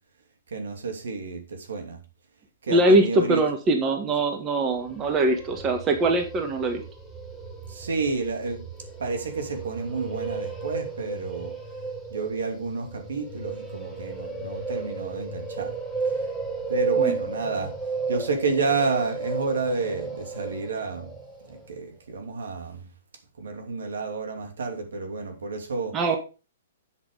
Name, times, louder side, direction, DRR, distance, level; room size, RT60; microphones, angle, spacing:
voice 1, 0.5-2.0 2.6-3.4 7.7-8.6 9.0-11.6 12.1-15.7 16.7-17.7 18.1-21.1 21.4-22.8 23.4-26.0, right 4 dB, 80° right, 2.6 m, -30 dB
voice 2, 2.7-6.8 17.0-17.2 25.9-26.2, right 2 dB, 25° right, 1.6 m, -22 dB
sound 1, 4.7-21.7, right 4 dB, ahead, 1.7 m, -34 dB
8.1 x 6.0 x 5.0 m
hypercardioid pair, 130°, 0 cm